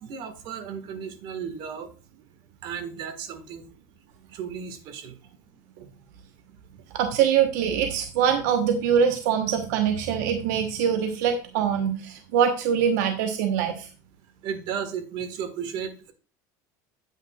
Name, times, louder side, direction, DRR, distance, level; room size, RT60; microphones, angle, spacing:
voice 1, 0.0-1.9 2.6-3.6 4.3-5.2 14.4-16.1, right 7 dB, 55° right, 8 dB, 1.7 m, -34 dB
voice 2, 6.9-13.9, right 8 dB, 80° right, 5 dB, 1.1 m, -23 dB
9.4 x 8.9 x 2.4 m, 0.35 s
supercardioid pair, 120°, 9 cm